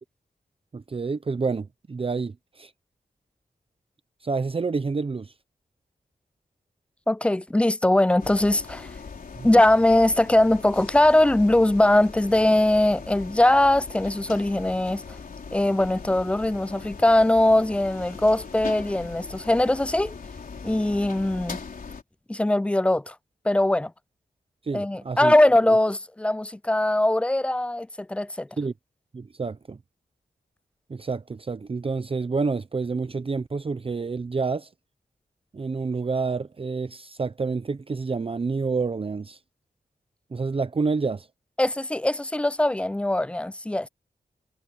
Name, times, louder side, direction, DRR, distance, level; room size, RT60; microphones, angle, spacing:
voice 1, 0.7-2.7 4.2-5.3 9.4-9.6 24.6-25.3 28.6-28.7 29.1-29.8 30.9-34.7 35.5-39.4 40.3-41.3, right 4 dB, 35° right, 0.7 m, -28 dB
voice 2, 7.1-8.9 9.4-15.0 15.5-20.1 20.6-21.6 22.3-23.2 23.5-23.9 24.7-28.5 41.6-43.9, left 1 dB, 5° left, 0.3 m, -21 dB
sound 1, 8.2-22.0, left 5 dB, 60° left, 4.1 m, -40 dB
wide cardioid pair, 120°, 16 cm